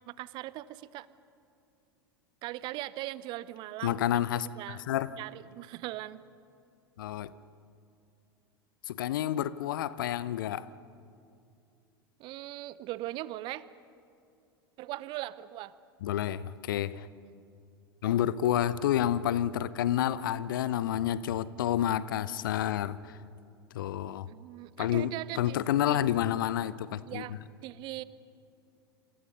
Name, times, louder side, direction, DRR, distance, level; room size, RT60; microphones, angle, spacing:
voice 1, 0.1-1.1 2.4-4.0 4.6-4.8 5.2-6.2 12.2-13.7 14.8-15.7 17.2-17.4 24.3-25.6 25.9-26.0 27.1-27.3 27.6-28.0, right 16 dB, 40° right, 18 dB, 0.8 m, -39 dB
voice 2, 3.8-5.1 7.0-7.3 8.9-10.7 16.0-17.1 18.0-23.2 23.7-24.3 24.8-27.4, left 11 dB, 60° left, 18 dB, 0.8 m, -29 dB
28.5 x 28.0 x 5.5 m, 2.6 s
figure-of-eight pair, 85°, 13 cm